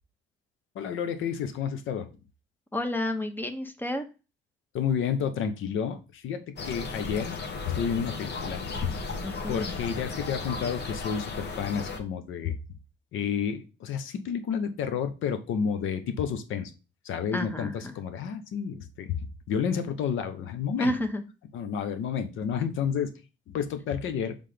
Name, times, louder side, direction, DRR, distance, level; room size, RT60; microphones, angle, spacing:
voice 1, 0.7-2.1 4.7-7.4 7.6-8.9 9.5-12.6 13.1-16.7 17.0-19.2 19.5-20.9 21.5-23.1 23.5-24.4, left 7 dB, 85° left, 10 dB, 1.0 m, -30 dB
voice 2, 2.7-4.1 9.2-9.7 17.3-17.9 20.8-21.2, left 1 dB, 10° left, 7 dB, 1.1 m, -30 dB
sound 1, 6.6-12.0, left 4 dB, 60° left, 1.3 m, -35 dB
5.9 x 3.6 x 5.1 m, 0.31 s
cardioid pair, 90°, 20 cm